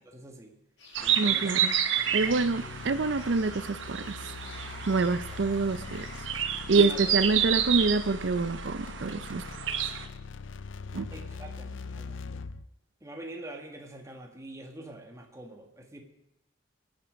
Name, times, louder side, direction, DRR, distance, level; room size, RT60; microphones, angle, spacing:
voice 1, 0.1-0.5 1.0-2.8 6.7-7.5 11.1-12.4 13.0-16.0, right 1 dB, 15° right, 2 dB, 1.7 m, -45 dB
sound 1, 0.8-6.3, left 3 dB, 70° left, 5.7 m, -52 dB
sound 2, 0.9-10.1, right 9 dB, 85° right, 1.0 m, -30 dB
voice 2, 1.2-1.7 2.1-4.3 4.9-6.1 6.7-9.4 10.9-11.1, right 3 dB, 65° right, 11 dB, 0.6 m, -26 dB
sound 3, 2.2-12.7, left 4 dB, 90° left, 0.5 m, -42 dB
22.5 x 9.6 x 5.2 m, 0.88 s
head